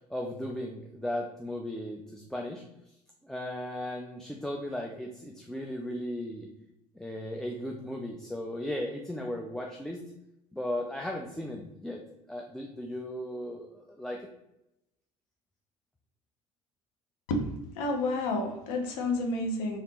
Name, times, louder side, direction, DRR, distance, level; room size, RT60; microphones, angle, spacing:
voice 1, 0.1-2.6 3.2-6.5 7.0-10.0 10.5-12.0 12.3-14.3, left 1 dB, 5° left, 0 dB, 0.4 m, -36 dB
voice 2, 17.8-19.8, left 2 dB, 60° left, 2 dB, 0.8 m, -30 dB
3.4 x 2.5 x 4.0 m, 0.87 s
figure-of-eight pair, 60°, 18 cm